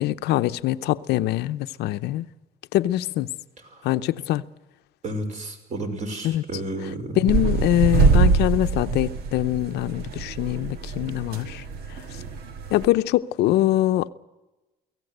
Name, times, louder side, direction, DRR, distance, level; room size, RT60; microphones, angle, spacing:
voice 1, 0.0-2.3 2.7-3.3 3.8-4.4 6.2-6.4 7.2-11.6 12.7-14.1, left 14 dB, 80° left, 0.8 m, -23 dB
voice 2, 5.0-7.2, right 1 dB, 45° right, 5.5 m, -32 dB
sound 1, 7.3-12.9, right 4 dB, 70° right, 2.0 m, -24 dB
24.0 x 17.0 x 8.0 m
cardioid pair, 110°, 17 cm